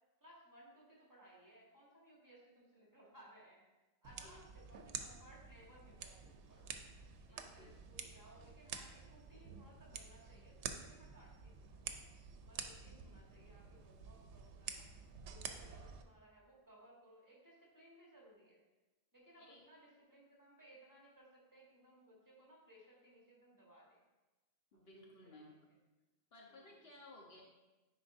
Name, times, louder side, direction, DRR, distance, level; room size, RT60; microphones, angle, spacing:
voice 1, 0.2-3.6 4.0-6.8 7.3-12.0 12.4-14.9 15.2-18.6 19.1-24.0 24.7-25.4 26.4-26.7, right 1 dB, 15° right, -5 dB, 1.5 m, -63 dB
sound 1, 4.0-16.0, right 6 dB, 85° right, 0.9 m, -50 dB
voice 2, 4.2-4.7 7.3-7.7 12.7-13.2 19.4-19.6 24.7-25.6 26.3-27.4, left 1 dB, 65° left, -1 dB, 1.2 m, -59 dB
9.7 x 4.4 x 2.6 m, 1.1 s
omnidirectional pair, 1.1 m